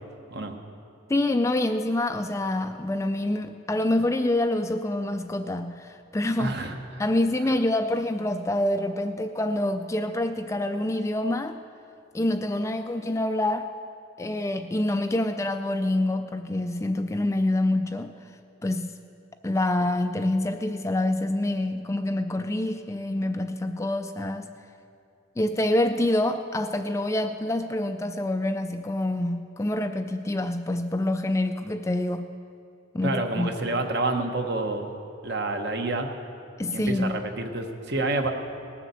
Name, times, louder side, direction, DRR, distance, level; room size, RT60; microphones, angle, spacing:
voice 1, 1.1-6.5 7.0-11.6 12.1-13.7 14.2-18.1 18.6-19.0 19.4-24.5 25.4-32.3 32.9-33.8 36.6-37.3, left 1 dB, 15° left, 8 dB, 0.3 m, -26 dB
voice 2, 6.4-7.0 33.0-35.0 35.2-36.1 36.7-38.3, right 2 dB, 55° right, 5 dB, 1.2 m, -28 dB
19.0 x 7.2 x 7.0 m, 2.6 s
head